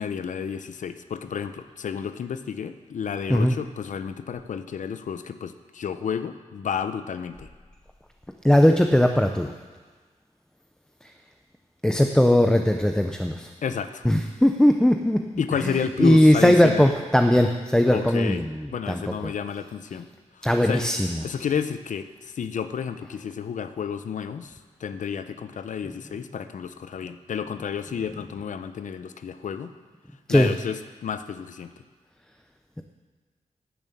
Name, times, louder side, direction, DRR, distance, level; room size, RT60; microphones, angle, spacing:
voice 1, 0.0-7.5 13.6-14.0 15.4-16.9 17.9-18.4 18.7-20.1 20.4-20.8 21.2-29.7 30.3-31.7, left 7 dB, 75° left, 10 dB, 0.7 m, -31 dB
voice 2, 8.4-9.5 11.8-13.5 14.0-15.2 15.6-19.3 20.4-21.2 30.3-30.5, left 1 dB, 5° left, 4 dB, 0.6 m, -19 dB
12.0 x 7.3 x 8.5 m, 1.4 s
wide cardioid pair, 110°, 13 cm